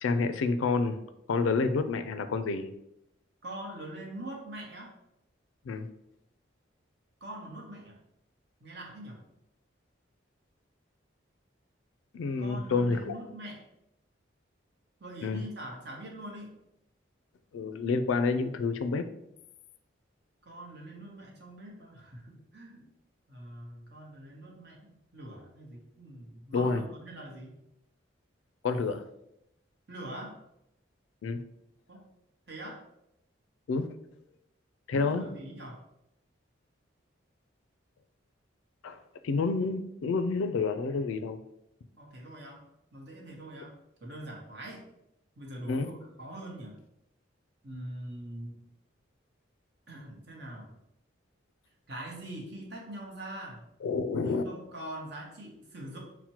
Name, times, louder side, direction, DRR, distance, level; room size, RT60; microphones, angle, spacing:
voice 1, 0.0-1.0 1.3-2.7 5.7-5.9 12.1-13.2 15.2-15.4 17.5-19.1 26.5-26.8 28.6-29.0 31.2-31.4 33.7-33.9 34.9-35.2 38.8-39.0 39.2-41.4 45.7-45.9 53.8-54.5, left 4 dB, 75° left, 10 dB, 0.3 m, -28 dB
voice 2, 3.4-4.9 7.2-8.0 8.6-9.2 12.4-13.6 15.0-16.5 20.4-22.9 23.3-27.6 29.9-30.4 31.9-32.0 32.5-32.8 34.9-35.8 42.0-42.6 42.9-43.7 44.0-44.8 45.4-46.8 47.6-48.5 49.9-50.7 51.9-53.6 54.2-56.0, right 1 dB, 55° right, -1 dB, 0.9 m, -43 dB
5.8 x 2.1 x 2.8 m, 0.82 s
head